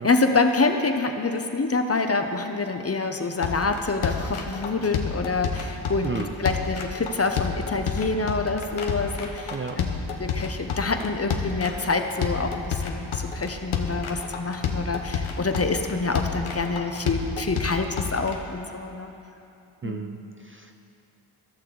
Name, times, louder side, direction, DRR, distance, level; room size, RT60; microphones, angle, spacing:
voice 1, 0.0-19.1 19.8-20.1, left 3 dB, 30° left, 6 dB, 0.8 m, -26 dB
sound 1, 3.4-18.3, left 6 dB, 75° left, 1.0 m, -29 dB
voice 2, 6.0-6.3 9.5-9.8 19.8-20.7, right 5 dB, 25° right, 5 dB, 0.5 m, -33 dB
14.0 x 6.5 x 3.9 m, 2.8 s
cardioid pair, 45°, 50 cm